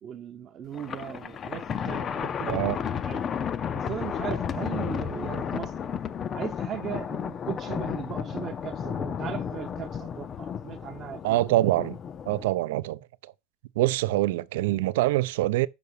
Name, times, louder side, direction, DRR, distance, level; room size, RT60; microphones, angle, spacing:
voice 1, 0.0-3.2 3.7-5.7 6.3-11.4, right 9 dB, 30° right, 0.6 m, -38 dB
Thunder, 0.7-12.5, left 7 dB, 20° left, 0.5 m, -33 dB
voice 2, 2.5-2.8 11.2-12.0 12.3-13.3 13.8-15.7, right 16 dB, 85° right, 0.6 m, -25 dB
6.8 x 6.0 x 6.8 m
cardioid pair, 170°, 0 cm